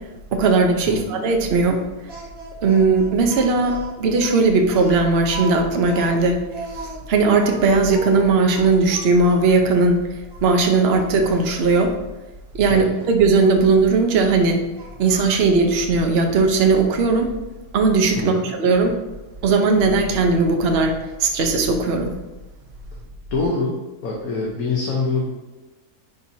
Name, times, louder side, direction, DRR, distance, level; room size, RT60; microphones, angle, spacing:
voice 1, 0.3-1.8 2.6-6.4 6.7-10.0 10.4-11.9 12.5-14.6 15.0-17.3 17.7-18.9 19.4-20.9 21.2-22.2, right 3 dB, 50° right, 3 dB, 0.9 m, -18 dB
Speech, 2.1-9.7 10.3-10.4 10.9-11.9 13.3-13.6 14.7-15.5, right 3 dB, 15° right, 1.1 m, -37 dB
voice 2, 18.1-18.5 23.3-23.8 24.0-25.2, left 3 dB, 65° left, -2 dB, 1.4 m, -24 dB
10.5 x 4.6 x 2.8 m, 1.1 s
omnidirectional pair, 1.7 m